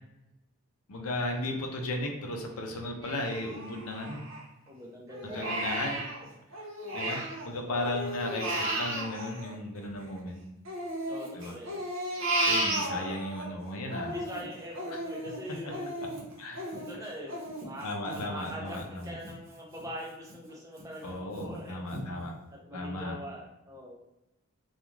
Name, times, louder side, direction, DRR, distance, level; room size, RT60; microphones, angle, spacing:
voice 1, 0.9-4.2 5.2-6.0 6.9-10.4 11.3-11.5 12.4-14.1 16.4-16.7 17.8-19.1 21.0-22.3 22.7-23.2, left 1 dB, 80° left, 2 dB, 0.5 m, -35 dB
Crying sobbing, 3.0-4.7 5.1-7.5 7.8-10.2 10.7-13.5 13.9-19.3 19.8-19.9 20.3-20.9 21.4-21.5 21.9-22.0, right 1 dB, 60° right, 0.8 m, -34 dB
voice 2, 4.7-5.5 7.7-8.0 11.1-11.9 12.9-13.3 14.1-16.0 16.7-21.8 22.5-24.0, equal, 15° right, -3 dB, 0.5 m, -43 dB
2.3 x 2.3 x 3.0 m, 0.93 s
head